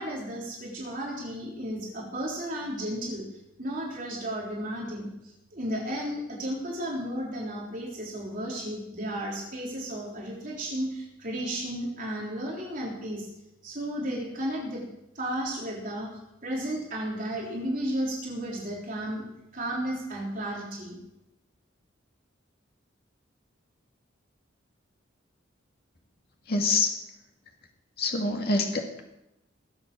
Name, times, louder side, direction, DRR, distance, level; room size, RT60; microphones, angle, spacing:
voice 1, 0.0-3.2 3.6-13.3 13.6-14.8 15.2-21.0, right 1 dB, 45° right, -4 dB, 3.8 m, -33 dB
voice 2, 26.5-26.9 28.0-29.0, left 3 dB, 50° left, 2 dB, 2.2 m, -26 dB
20.5 x 8.0 x 6.2 m, 0.89 s
head